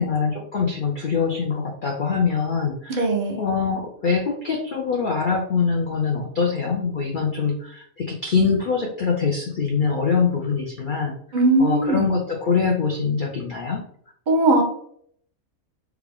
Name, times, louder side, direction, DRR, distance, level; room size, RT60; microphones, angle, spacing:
voice 1, 0.0-3.1 3.4-11.1 11.6-13.8, left 5 dB, 80° left, 0 dB, 0.4 m, -23 dB
voice 2, 2.9-3.4 11.3-12.1 14.3-14.6, right 2 dB, 50° right, 1 dB, 0.6 m, -19 dB
3.5 x 2.3 x 3.5 m, 0.64 s
omnidirectional pair, 1.5 m